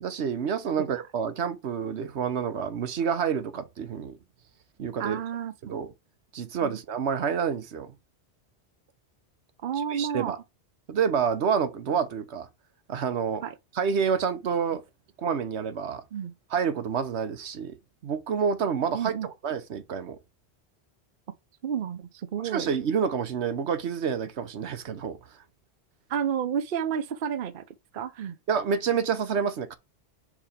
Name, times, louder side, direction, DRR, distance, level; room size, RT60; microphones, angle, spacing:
voice 1, 0.0-4.2 4.8-5.2 5.6-5.9 6.3-7.9 9.9-10.4 10.9-12.5 12.9-13.4 13.7-14.8 15.2-16.0 16.5-17.7 18.0-20.2 22.4-25.2 28.5-29.7, right 7 dB, 85° right, 1.2 m, -28 dB
voice 2, 5.0-5.7 6.6-6.8 9.6-10.4 13.4-13.5 16.1-16.3 18.9-19.3 21.6-22.7 26.1-27.6 27.9-28.4, right 8 dB, 55° right, 0.9 m, -31 dB
5.0 x 4.1 x 5.0 m
omnidirectional pair, 1.1 m